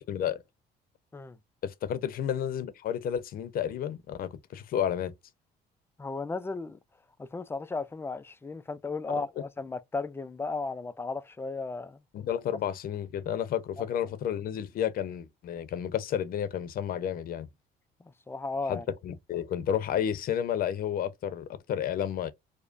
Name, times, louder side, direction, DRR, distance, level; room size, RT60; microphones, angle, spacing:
voice 1, 0.1-0.4 1.6-5.1 9.1-9.2 12.1-17.5 18.7-22.3, left 9 dB, 60° left, 0.7 m, -31 dB
voice 2, 6.0-6.8 7.2-12.0 18.3-18.9, left 3 dB, 15° left, 0.3 m, -35 dB
5.0 x 2.1 x 2.5 m
cardioid pair, 110°, 17 cm